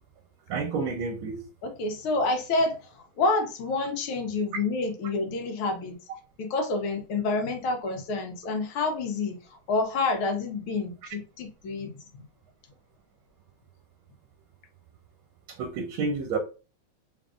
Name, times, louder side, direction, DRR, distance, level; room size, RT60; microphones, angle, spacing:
voice 1, 0.5-1.4 15.5-16.4, right 4 dB, 80° right, 5 dB, 1.4 m, -30 dB
voice 2, 1.6-6.0 6.4-11.9, left 3 dB, 80° left, 5 dB, 1.7 m, -28 dB
3.8 x 3.5 x 2.4 m, 0.33 s
omnidirectional pair, 2.3 m